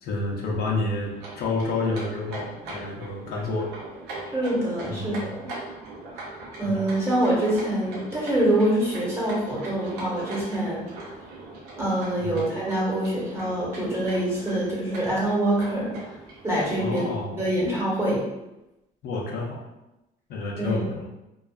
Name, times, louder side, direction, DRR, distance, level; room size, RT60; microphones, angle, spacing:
voice 1, 0.0-3.7 4.8-5.3 6.6-6.8 12.2-12.5 16.8-17.4 19.0-19.6 20.3-21.1, left 2 dB, 70° left, -1 dB, 0.6 m, -29 dB
sound 1, 1.1-17.3, right 2 dB, 90° right, 0.6 m, -40 dB
voice 2, 4.3-5.5 6.6-10.8 11.8-16.2 16.4-17.0 17.4-18.2 20.6-20.8, right 1 dB, 15° right, -6 dB, 1.0 m, -25 dB
2.4 x 2.3 x 2.3 m, 0.94 s
cardioid pair, 110°, 17 cm